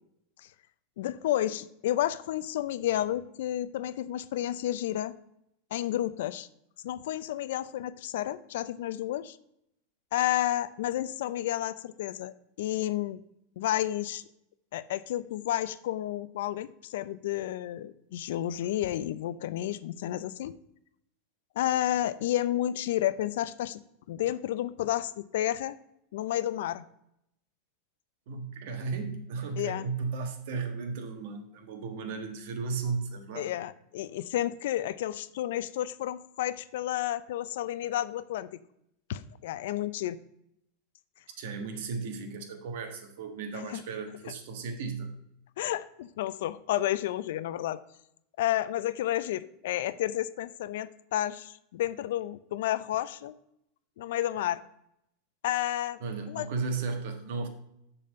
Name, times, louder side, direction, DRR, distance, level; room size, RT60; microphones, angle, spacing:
voice 1, 1.0-5.1 5.7-6.5 6.8-9.4 10.1-13.2 13.6-14.2 14.7-20.5 21.6-23.8 24.1-25.8 26.1-26.8 29.6-29.9 33.3-38.5 39.1-40.2 43.5-43.8 45.6-47.8 48.4-53.3 54.0-54.6 55.4-56.0 56.3-56.5, left 13 dB, 75° left, 15 dB, 0.4 m, -31 dB
voice 2, 28.3-33.5 41.4-45.1 56.0-57.5, right 4 dB, 70° right, 5 dB, 1.5 m, -35 dB
6.8 x 4.2 x 6.3 m, 0.77 s
supercardioid pair, 130°, 0 cm